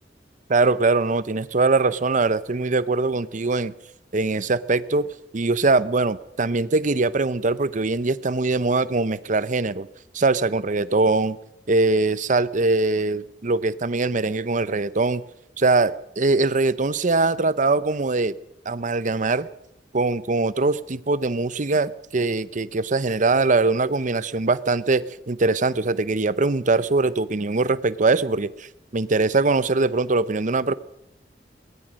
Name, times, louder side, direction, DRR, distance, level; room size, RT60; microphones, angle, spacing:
voice 1, 0.5-3.7 4.1-5.1 5.3-9.9 10.1-11.4 11.7-15.2 15.6-18.3 18.7-19.5 19.9-28.7 28.9-30.7, right 3 dB, 45° right, 16 dB, 0.8 m, -22 dB
22.5 x 18.0 x 6.4 m, 0.78 s
head